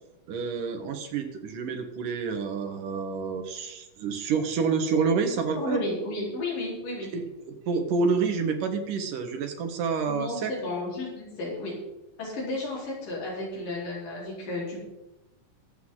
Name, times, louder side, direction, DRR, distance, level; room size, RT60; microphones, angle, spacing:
voice 1, 0.3-5.8 7.1-7.3 7.7-10.5, right 5 dB, 75° right, 5 dB, 3.1 m, -28 dB
voice 2, 5.5-7.1 10.1-11.7 12.2-14.8, left 2 dB, 80° left, -4 dB, 5.9 m, -33 dB
22.5 x 8.3 x 3.9 m, 0.98 s
omnidirectional pair, 3.8 m